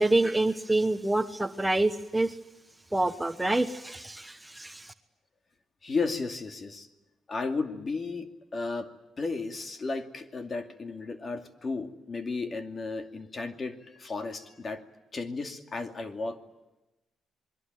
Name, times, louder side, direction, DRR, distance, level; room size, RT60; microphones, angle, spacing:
voice 1, 0.0-2.4 2.9-4.9, right 2 dB, 10° right, 9 dB, 1.1 m, -27 dB
voice 2, 5.8-6.9 7.3-8.9 9.2-14.8 15.1-16.4, left 3 dB, 35° left, 6 dB, 2.5 m, -34 dB
27.5 x 22.0 x 9.3 m, 1.0 s
cardioid pair, 90°, 0 cm